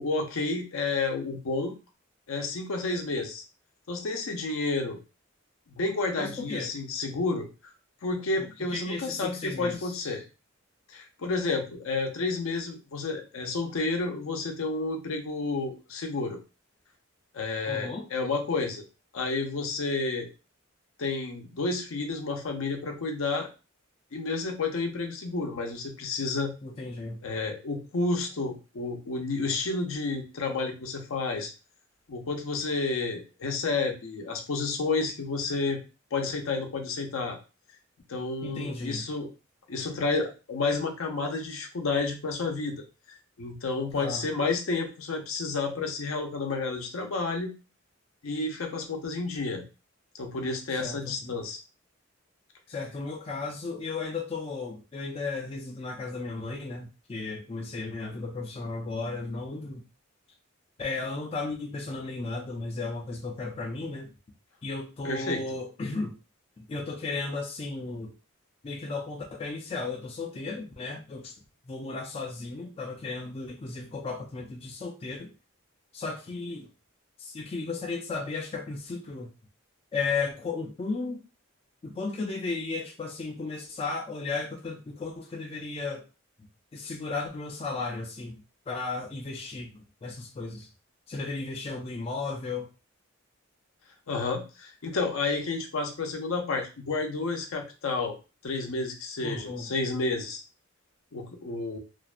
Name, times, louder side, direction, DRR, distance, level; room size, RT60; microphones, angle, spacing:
voice 1, 0.0-1.7 2.3-3.4 3.9-5.0 5.7-7.5 8.0-10.2 10.9-16.4 17.3-18.8 19.1-20.3 21.0-23.5 24.1-26.5 27.2-31.5 32.1-35.8 36.1-37.4 38.1-39.3 39.7-42.8 43.1-47.5 48.2-49.6 50.2-51.6 65.0-65.4 94.1-98.1 98.4-100.4 101.1-101.8, left 3 dB, 80° left, 3 dB, 0.6 m, -30 dB
voice 2, 6.1-6.7 8.4-10.1 17.7-18.1 26.6-27.2 38.4-39.0 43.9-44.2 50.7-51.3 52.7-59.8 60.8-64.1 64.6-66.2 66.6-68.1 68.6-71.3 71.7-75.3 75.9-76.7 77.2-79.3 79.9-81.2 81.8-86.0 86.7-88.4 88.7-90.7 91.1-92.7 99.2-99.7, left 3 dB, 30° left, 0 dB, 0.3 m, -35 dB
2.5 x 2.1 x 2.4 m, 0.31 s
head